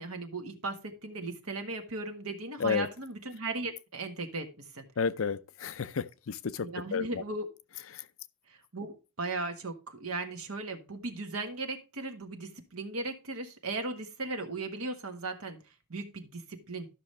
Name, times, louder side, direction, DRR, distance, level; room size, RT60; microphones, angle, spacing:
voice 1, 0.0-4.8 6.6-7.5 8.5-15.6 15.9-16.9, right 3 dB, 85° right, 1.5 m, -37 dB
voice 2, 5.0-7.2 7.9-8.1, left 5 dB, 65° left, 0.5 m, -32 dB
12.5 x 6.1 x 3.2 m
head